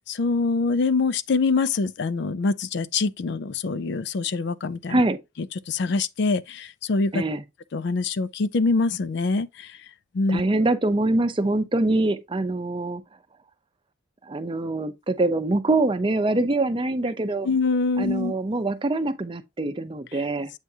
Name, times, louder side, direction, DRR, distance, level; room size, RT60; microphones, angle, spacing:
voice 1, 0.1-5.0 5.7-7.2 7.7-9.7 10.1-10.4 17.4-18.3, left 3 dB, 55° left, 0.4 m, -24 dB
voice 2, 4.9-5.2 7.1-7.4 10.3-13.0 14.3-17.5 18.0-20.5, right 2 dB, 25° right, 0.6 m, -24 dB
8.0 x 4.7 x 2.7 m
head